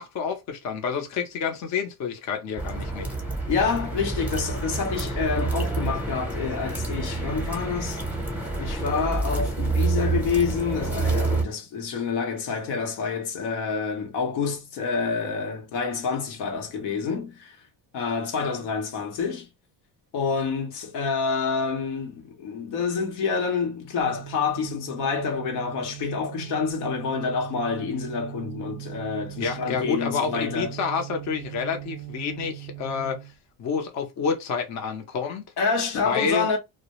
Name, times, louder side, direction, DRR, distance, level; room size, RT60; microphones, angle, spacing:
voice 1, 0.0-3.1 29.4-33.2 33.6-35.4 36.0-36.5, left 6 dB, 45° left, 0.6 m, -28 dB
sound 1, 2.6-11.4, right 3 dB, 5° right, 0.7 m, -28 dB
voice 2, 3.5-8.0 8.6-17.6 17.9-19.5 20.1-30.7 35.6-36.6, left 5 dB, 85° left, 0.9 m, -28 dB
sound 2, 24.0-33.4, right 19 dB, 30° right, 0.4 m, -40 dB
2.2 x 2.0 x 2.8 m
cardioid pair, 120°, 39 cm